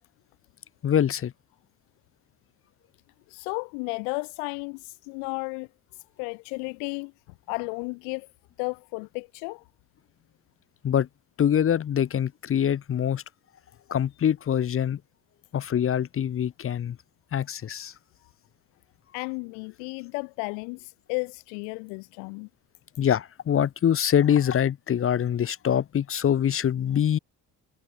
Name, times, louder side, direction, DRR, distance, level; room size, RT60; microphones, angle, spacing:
voice 1, 0.8-1.3 10.8-11.1 11.4-13.2 13.9-15.0 15.5-17.0 17.3-17.9 23.0-27.2, left 9 dB, 30° left, 0.7 m, -24 dB
voice 2, 3.3-5.7 6.2-7.1 7.5-8.3 8.6-9.6 19.1-22.5, left 40 dB or more, 70° left, 1.3 m, -33 dB
hypercardioid pair, 55°, 48 cm